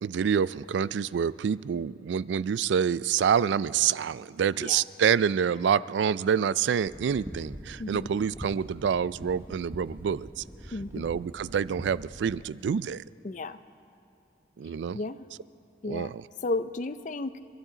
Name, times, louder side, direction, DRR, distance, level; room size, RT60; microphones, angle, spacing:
voice 1, 0.0-10.4 10.9-13.0 14.6-15.0 15.9-16.2, right 7 dB, 85° right, 19 dB, 0.3 m, -27 dB
sound 1, 6.9-12.3, equal, 15° right, 1.0 m, -44 dB
voice 2, 10.7-11.2 13.2-13.6 14.9-15.2 15.8-16.1 16.4-17.4, left 2 dB, 45° left, 12 dB, 0.5 m, -33 dB
29.0 x 12.5 x 3.9 m, 2.6 s
head